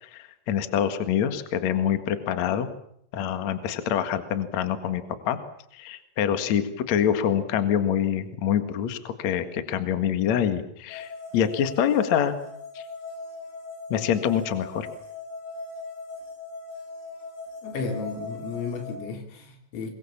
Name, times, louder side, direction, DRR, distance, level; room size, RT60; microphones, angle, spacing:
voice 1, 0.0-2.7 3.1-5.4 5.7-12.3 12.8-12.9 13.9-14.9, left 9 dB, 55° left, 10 dB, 2.0 m, -25 dB
sound 1, 10.9-18.9, left 3 dB, 70° left, 10.0 m, -39 dB
voice 2, 17.6-19.9, left 4 dB, 85° left, 4 dB, 6.4 m, -33 dB
23.5 x 23.0 x 7.3 m, 0.70 s
omnidirectional pair, 5.8 m